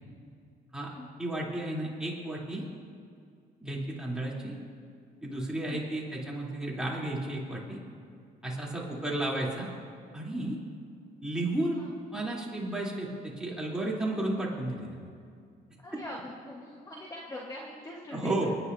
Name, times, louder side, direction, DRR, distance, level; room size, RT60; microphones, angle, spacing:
voice 1, 1.2-2.6 3.6-4.6 5.2-7.8 8.4-9.7 10.1-10.6 11.2-11.8 12.1-15.1 15.9-16.0 18.1-18.5, right 1 dB, 5° right, -5 dB, 3.3 m, -33 dB
voice 2, 15.8-18.5, left 1 dB, 20° left, -2 dB, 1.4 m, -43 dB
29.5 x 10.0 x 2.7 m, 2.3 s
cardioid pair, 110°, 17 cm